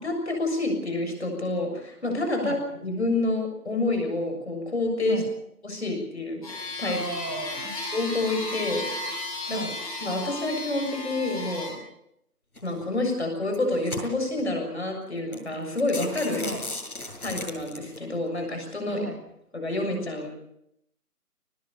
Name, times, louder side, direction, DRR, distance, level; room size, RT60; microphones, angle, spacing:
voice 1, 0.0-5.2 5.6-7.0 7.9-9.2 9.5-9.6 10.0-11.8 12.6-16.4 17.2-19.0 19.5-20.3, left 2 dB, 45° left, 3 dB, 7.0 m, -28 dB
sound 1, 6.4-11.7, left 2 dB, 25° left, 7.2 m, -34 dB
voice 2, 6.8-7.7 9.4-9.7 16.4-16.6 18.9-19.2, right 1 dB, 80° right, 6 dB, 7.2 m, -34 dB
sound 2, 12.6-12.8 13.4-14.4 15.0-15.1 15.3-15.5 15.8-18.0, left 2 dB, 65° left, 7.9 m, -36 dB
23.0 x 20.0 x 6.8 m, 0.77 s
figure-of-eight pair, 180°, 46 cm